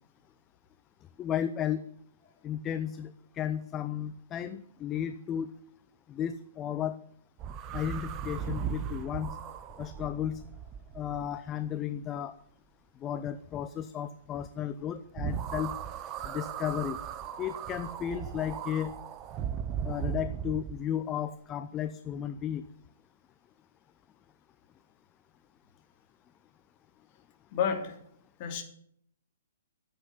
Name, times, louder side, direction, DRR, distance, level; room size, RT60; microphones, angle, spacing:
voice 1, 1.2-1.8 2.4-5.5 6.1-7.0 7.7-9.4 9.8-10.4 10.9-12.4 13.0-15.7 16.2-17.0 17.4-18.9 19.8-22.6, left 10 dB, 20° left, 12 dB, 0.6 m, -34 dB
sound 1, 7.4-11.7 15.2-20.8, right 9 dB, 25° right, 0.8 m, -37 dB
voice 2, 27.5-28.0 28.4-28.6, left 7 dB, 35° left, 4 dB, 2.8 m, -30 dB
13.5 x 8.0 x 9.6 m, 0.68 s
figure-of-eight pair, 120°, 0 cm